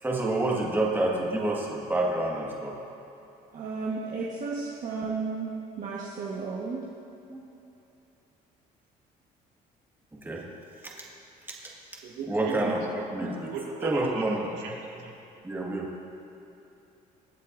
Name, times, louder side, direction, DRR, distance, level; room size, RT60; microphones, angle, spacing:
voice 1, 0.0-2.8 7.3-7.4 10.1-10.4 10.8-11.1 11.5-11.7 12.3-13.5 13.8-14.6 15.4-15.9, right 2 dB, 10° right, -3 dB, 1.8 m, -28 dB
voice 2, 3.5-5.5 5.8-6.8, right 4 dB, 50° right, -5 dB, 1.4 m, -33 dB
voice 3, 12.0-12.3 12.6-12.8 13.5-14.2 14.6-14.7 15.0-15.1, right 5 dB, 85° right, -3 dB, 2.1 m, -35 dB
23.0 x 8.3 x 2.6 m, 2.9 s
cardioid pair, 110°, 17 cm